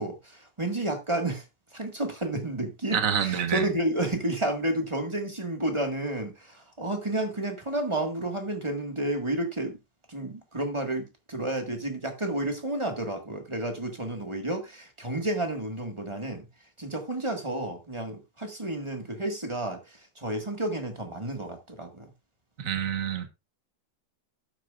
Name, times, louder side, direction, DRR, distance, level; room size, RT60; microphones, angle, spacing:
voice 1, 0.0-1.4 1.7-9.8 10.1-16.4 16.8-22.1, right 1 dB, 15° right, 1.8 m, -31 dB
voice 2, 2.9-3.7 22.6-23.3, right 8 dB, 50° right, 1.7 m, -27 dB
12.5 x 9.3 x 2.5 m
omnidirectional pair, 1.9 m